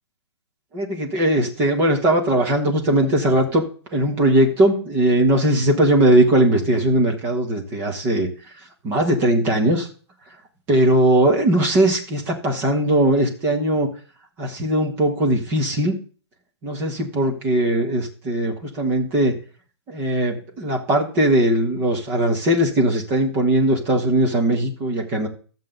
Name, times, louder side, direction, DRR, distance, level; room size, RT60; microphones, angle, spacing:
voice 1, 0.7-3.6 3.9-8.3 8.8-9.9 10.7-13.9 14.4-16.0 16.6-19.3 19.9-25.3, right 1 dB, 15° right, 2 dB, 1.3 m, -19 dB
13.0 x 7.5 x 3.9 m, 0.40 s
hypercardioid pair, 175°, 15 cm